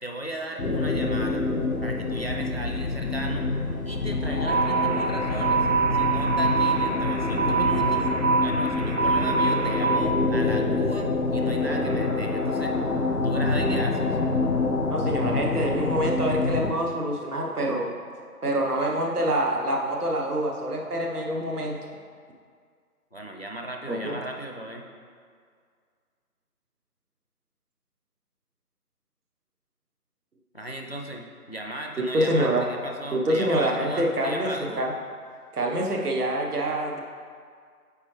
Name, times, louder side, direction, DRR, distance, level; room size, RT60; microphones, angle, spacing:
voice 1, 0.0-1.4 1.8-3.5 3.8-5.7 5.9-8.1 8.4-12.7 13.2-14.2 23.1-24.8 30.5-34.9, right 1 dB, 45° left, 2 dB, 0.4 m, -36 dB
sound 1, 0.6-16.7, left 3 dB, 90° left, 1.3 m, -26 dB
sound 2, 4.5-10.0, right 5 dB, 55° right, 0.7 m, -25 dB
voice 2, 14.9-17.9 18.4-21.8 23.9-24.2 32.0-32.7 33.1-34.9 35.5-37.0, right 1 dB, 75° right, 0 dB, 1.2 m, -26 dB
8.6 x 4.6 x 3.2 m, 2.1 s
figure-of-eight pair, 165°, 46 cm